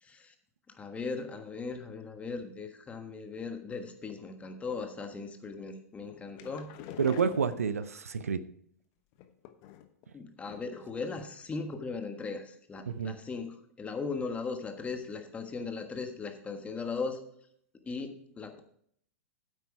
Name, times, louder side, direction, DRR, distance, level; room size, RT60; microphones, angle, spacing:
voice 1, 0.0-0.3 0.7-6.7 10.1-17.2 17.8-18.6, left 4 dB, 15° left, 6 dB, 1.4 m, -38 dB
sound 1, 6.0-8.1 9.1-10.0 10.5-10.9 11.2-11.3 11.6-11.7, left 11 dB, 45° left, 1.1 m, -47 dB
voice 2, 7.0-8.4 12.9-13.2, right 6 dB, 80° right, 14 dB, 0.6 m, -29 dB
9.5 x 8.3 x 4.6 m, 0.66 s
hypercardioid pair, 105°, 8 cm